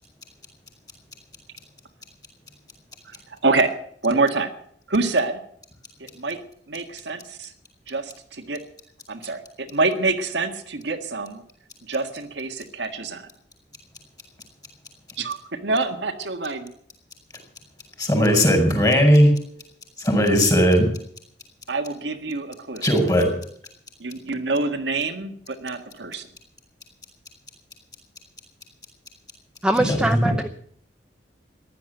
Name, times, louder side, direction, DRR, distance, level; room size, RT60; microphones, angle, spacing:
voice 1, 4.0-4.5 4.9-5.4 6.0-6.4 6.7-7.5 7.9-8.6 9.1-11.4 11.8-13.3 15.2-16.7 21.7-22.9 24.0-26.3, right 3 dB, 80° right, 5 dB, 1.7 m, -26 dB
voice 2, 18.0-19.4 20.0-20.9 22.8-23.3 29.8-30.0, equal, 20° left, 3 dB, 5.1 m, -17 dB
voice 3, 29.6-30.5, right 1 dB, 5° right, 6 dB, 0.7 m, -22 dB
15.5 x 11.5 x 7.8 m, 0.66 s
head